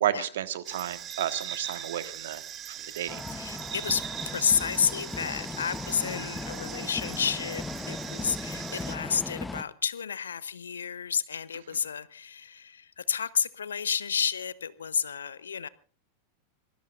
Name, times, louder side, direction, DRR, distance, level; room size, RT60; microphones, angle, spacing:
voice 1, 0.0-2.4 2.7-3.2, right 11 dB, 60° right, 12 dB, 1.5 m, -31 dB
sound 1, 0.6-9.0, right 9 dB, 30° right, 1.5 m, -40 dB
sound 2, 3.1-9.6, left 3 dB, 10° left, 0.9 m, -38 dB
voice 2, 3.3-15.7, left 7 dB, 70° left, 19 dB, 0.8 m, -31 dB
25.5 x 20.0 x 2.5 m, 0.38 s
figure-of-eight pair, 90°, 0 cm